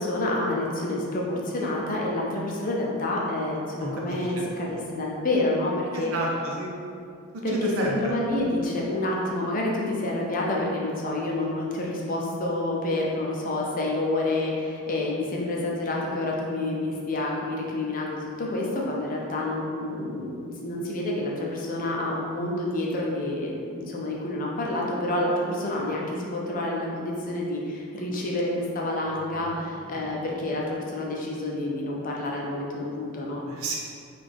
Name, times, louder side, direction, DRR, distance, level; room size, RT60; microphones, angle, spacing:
voice 1, 0.0-6.1 7.4-33.4, left 1 dB, 40° left, -2 dB, 0.5 m, -28 dB
voice 2, 3.8-4.5 5.9-6.7 7.3-8.0 29.2-29.6 29.9-30.1 33.5-33.8, right 1 dB, 85° right, -2 dB, 0.6 m, -31 dB
3.7 x 2.4 x 3.4 m, 2.4 s
head